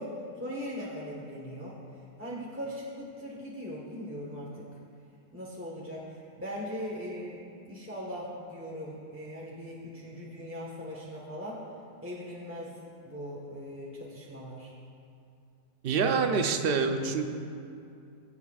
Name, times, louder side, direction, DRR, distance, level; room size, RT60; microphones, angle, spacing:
voice 1, 0.0-4.7 5.3-11.6 12.0-12.7 13.0-14.7, equal, 10° right, -5 dB, 1.1 m, -40 dB
voice 2, 15.8-17.2, right 5 dB, 55° right, 5 dB, 0.7 m, -26 dB
23.0 x 7.9 x 2.4 m, 2.5 s
omnidirectional pair, 1.6 m